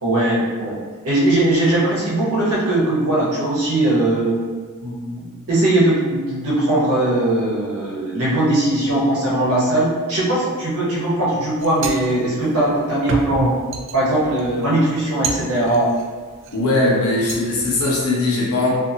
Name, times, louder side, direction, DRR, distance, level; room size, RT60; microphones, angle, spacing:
voice 1, 0.0-0.8 1.0-4.4 4.8-13.6 13.9-15.9, right 1 dB, 75° right, -6 dB, 0.9 m, -19 dB
sound 1, 11.6-16.6 17.0-18.1, right 3 dB, 60° right, 0.3 m, -30 dB
voice 2, 16.5-18.7, left 2 dB, 80° left, -4 dB, 0.7 m, -19 dB
2.6 x 2.5 x 2.7 m, 1.5 s
head